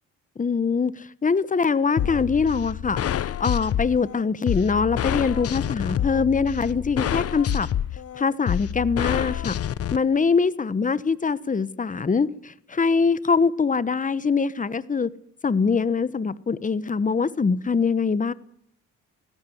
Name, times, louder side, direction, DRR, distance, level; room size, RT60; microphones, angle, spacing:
voice 1, 0.4-7.7 8.1-9.5 9.9-15.1 15.4-18.3, left 5 dB, 25° left, 1.2 m, -23 dB
sound 1, 2.0-10.0, left 10 dB, 50° left, 0.8 m, -27 dB
18.0 x 16.0 x 9.5 m
cardioid pair, 90°, 30 cm